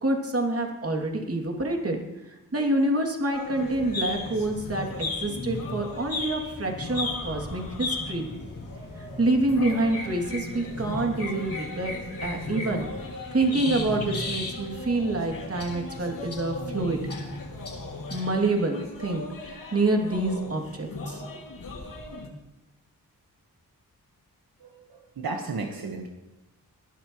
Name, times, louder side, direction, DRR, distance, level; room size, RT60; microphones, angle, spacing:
voice 1, 0.0-2.0 2.5-8.3 9.2-11.9 12.2-12.9 13.3-17.0 18.1-21.2, right 2 dB, 40° right, 2 dB, 2.8 m, -27 dB
sound 1, 3.3-22.3, left 2 dB, 65° left, 2.5 m, -38 dB
sound 2, 3.7-18.2, left 3 dB, 40° left, 3.2 m, -37 dB
voice 2, 24.6-26.1, right 3 dB, 75° right, 2 dB, 1.5 m, -34 dB
19.5 x 12.0 x 3.2 m, 0.97 s
cardioid pair, 65°, 36 cm